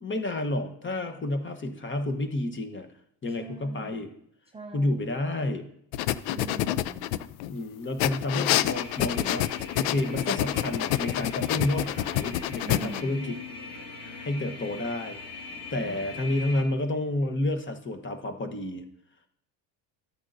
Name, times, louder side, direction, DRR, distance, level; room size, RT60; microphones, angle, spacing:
voice 1, 0.0-2.9 3.2-4.1 4.7-5.7 7.5-13.4 13.7-15.4 15.7-18.8, left 1 dB, 25° left, 7 dB, 1.1 m, -30 dB
voice 2, 3.3-4.1 4.5-5.1 6.3-7.2 12.6-13.4 15.7-16.3, right 2 dB, 10° right, 3 dB, 0.5 m, -42 dB
sound 1, 5.9-7.5 8.0-13.0, left 13 dB, 75° left, 0.6 m, -27 dB
sound 2, 8.7-16.6, left 3 dB, 55° left, 2.8 m, -41 dB
13.0 x 8.7 x 2.6 m, 0.71 s
supercardioid pair, 85°, 50 cm